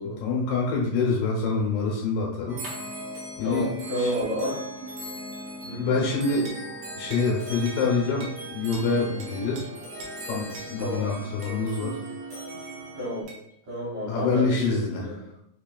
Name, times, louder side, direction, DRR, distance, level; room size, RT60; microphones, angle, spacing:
voice 1, 0.2-2.6 3.4-3.7 4.0-4.1 5.8-6.5 7.0-9.7 10.2-11.9 14.1-15.1, left 4 dB, 85° left, -2 dB, 2.7 m, -26 dB
sound 1, 2.5-13.2, right 1 dB, 70° right, 1.8 m, -38 dB
voice 2, 3.4-4.6 5.6-5.9 10.8-11.1 12.9-13.3 13.7-15.2, equal, 50° right, -8 dB, 2.1 m, -31 dB
sound 2, 6.4-6.7 7.1-7.3 7.7-7.8 8.2-8.4 8.7-8.9 9.2-9.6 10.0-10.2 10.5-10.7 11.4-11.6 13.3-13.4, right 3 dB, 90° right, 1.4 m, -43 dB
5.5 x 3.0 x 2.3 m, 0.77 s
omnidirectional pair, 3.8 m